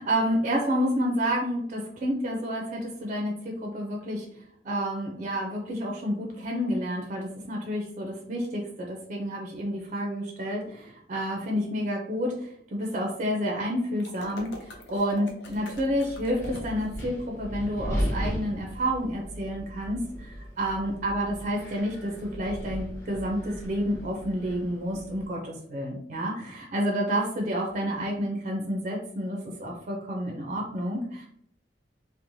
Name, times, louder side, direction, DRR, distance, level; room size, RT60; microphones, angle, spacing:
voice 1, 0.0-4.3 4.6-14.5 14.9-31.3, equal, 45° right, 0 dB, 0.4 m, -29 dB
sound 1, 14.0-17.0, equal, 70° left, 0.5 m, -43 dB
Wind, 15.7-25.3, equal, 15° left, 0.7 m, -36 dB
2.9 x 2.0 x 2.6 m, 0.69 s
head